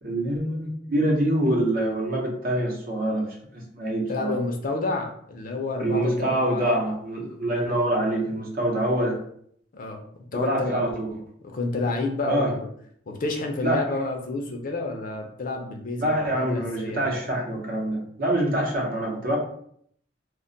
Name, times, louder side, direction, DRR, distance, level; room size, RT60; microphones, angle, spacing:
voice 1, 0.0-3.2 3.5-4.4 5.8-9.2 10.3-11.2 12.2-12.5 13.6-13.8 16.0-19.4, right 1 dB, 55° right, -1 dB, 0.8 m, -25 dB
voice 2, 4.1-6.8 9.7-10.0 10.3-10.9 11.5-12.7 13.1-17.1, left 3 dB, 50° left, 2 dB, 0.5 m, -30 dB
2.2 x 2.1 x 3.8 m, 0.65 s
head